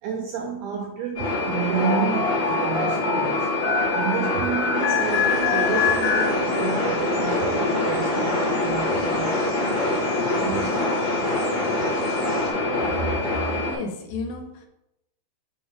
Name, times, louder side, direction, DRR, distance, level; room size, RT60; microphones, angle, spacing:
voice 1, 0.0-3.5 3.9-10.8, right 6 dB, 80° right, 2 dB, 1.8 m, -30 dB
sound 1, 1.1-13.7, left 2 dB, 35° left, 0.8 m, -25 dB
sound 2, 1.8-6.9, left 6 dB, 55° left, 2.2 m, -26 dB
sound 3, 4.9-12.5, equal, 25° right, 1.2 m, -41 dB
voice 2, 13.6-14.7, left 2 dB, 85° left, 4 dB, 2.6 m, -32 dB
6.7 x 3.1 x 5.0 m, 0.87 s
omnidirectional pair, 4.1 m